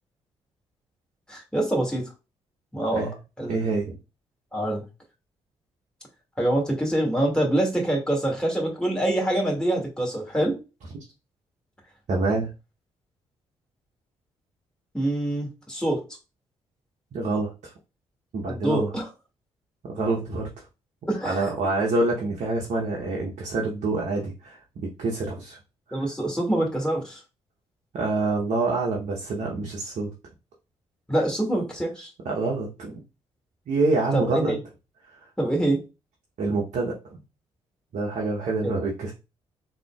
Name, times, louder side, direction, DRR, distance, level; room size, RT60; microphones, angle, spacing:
voice 1, 1.3-2.1 2.7-3.1 3.4-3.7 4.5-4.8 6.4-10.6 14.9-16.0 18.5-19.1 21.1-21.5 25.9-27.2 31.1-32.1 34.1-34.6 35.4-35.8 38.6-38.7, right 1 dB, 5° left, -1 dB, 1.9 m, -25 dB
voice 2, 3.5-4.0 12.1-12.5 17.1-17.7 18.3-18.9 19.9-20.5 21.2-25.6 25.9-26.0 27.9-30.1 32.2-33.0 33.7-34.6 36.4-36.9 37.9-39.1, right 3 dB, 55° right, -1 dB, 0.9 m, -26 dB
3.7 x 2.8 x 2.3 m, 0.29 s
hypercardioid pair, 40°, 14 cm